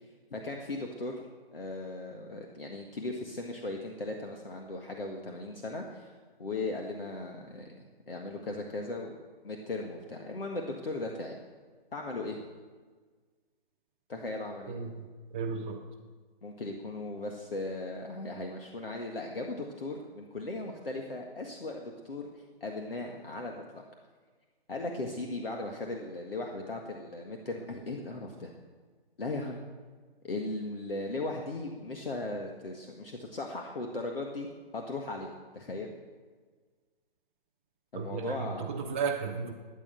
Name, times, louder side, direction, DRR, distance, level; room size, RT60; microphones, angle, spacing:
voice 1, 0.3-1.1 1.5-6.1 6.4-9.2 9.4-11.3 11.9-12.4 14.1-14.8 16.4-23.8 24.7-28.5 29.2-29.6 30.2-34.5 34.7-35.3 35.5-35.9 37.9-38.8, left 2 dB, 70° left, 1 dB, 1.9 m, -37 dB
voice 2, 14.7-15.1 15.3-15.8 38.0-39.5, right 5 dB, 10° right, -3 dB, 0.3 m, -34 dB
14.0 x 9.3 x 9.3 m, 1.5 s
figure-of-eight pair, 130°, 30 cm